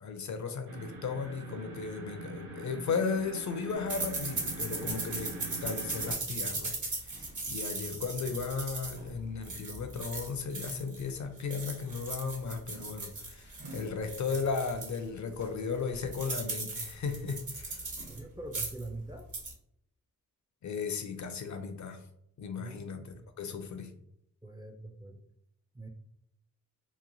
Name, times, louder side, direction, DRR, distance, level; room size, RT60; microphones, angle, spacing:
voice 1, 0.0-17.9 20.6-22.0 22.4-23.9, left 5 dB, 50° left, 7 dB, 0.5 m, -36 dB
sound 1, 0.7-6.1, right 4 dB, 80° right, 0.6 m, -44 dB
sound 2, 3.9-11.1 11.4-15.0 15.4-15.5 15.8-18.2 18.5-18.9 19.2-19.5, right 3 dB, 55° right, 0.9 m, -38 dB
voice 2, 18.1-19.3 22.6-23.3 24.4-25.2 25.7-25.9, right 2 dB, 10° right, 4 dB, 0.3 m, -44 dB
3.0 x 2.1 x 2.5 m, 0.75 s
cardioid pair, 50°, 37 cm